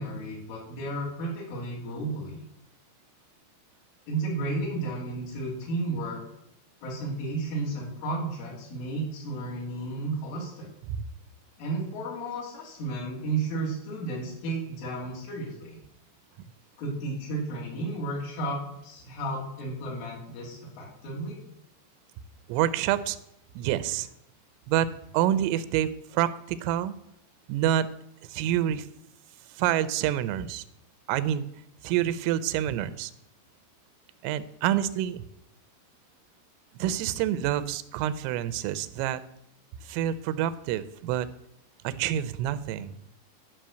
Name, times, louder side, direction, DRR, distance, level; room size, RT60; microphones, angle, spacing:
voice 1, 0.0-2.4 4.1-6.2 6.8-10.7 11.6-15.7 16.8-21.4, right 2 dB, 75° left, -4 dB, 5.5 m, -33 dB
voice 2, 22.5-23.2 23.6-24.1 24.7-27.0 27.5-27.9 28.2-28.9 29.5-30.6 31.1-31.5 31.8-33.1 34.2-35.3 36.7-39.2 39.8-41.3 41.8-43.0, right 11 dB, 90° right, 15 dB, 3.2 m, -27 dB
11.5 x 5.5 x 7.6 m, 0.80 s
omnidirectional pair, 5.6 m